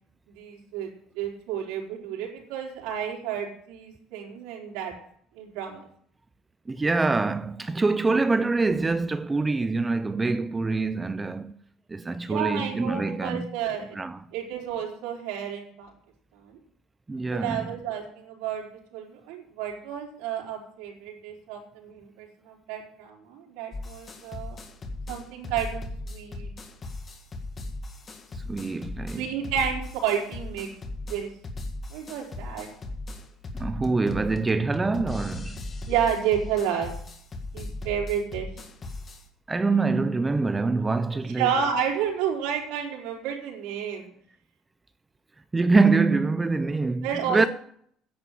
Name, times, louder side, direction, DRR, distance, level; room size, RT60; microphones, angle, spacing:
voice 1, 0.4-0.9 1.2-4.9 5.4-5.8 12.3-14.0 14.3-15.9 16.5-16.6 17.3-18.6 18.9-24.6 25.1-26.5 29.1-30.7 31.1-31.3 31.9-32.7 35.9-36.9 37.5-38.5 41.4-44.1 47.0-47.5, right 8 dB, 90° right, 4.0 m, -30 dB
voice 2, 6.7-11.6 11.9-13.5 13.9-14.2 17.1-17.7 28.3-29.2 33.6-35.6 39.5-41.5 45.5-47.5, right 3 dB, 15° right, 0.4 m, -25 dB
sound 1, 23.7-39.2, left 2 dB, 25° left, 1.8 m, -37 dB
10.0 x 8.0 x 9.1 m
cardioid pair, 150°, 0 cm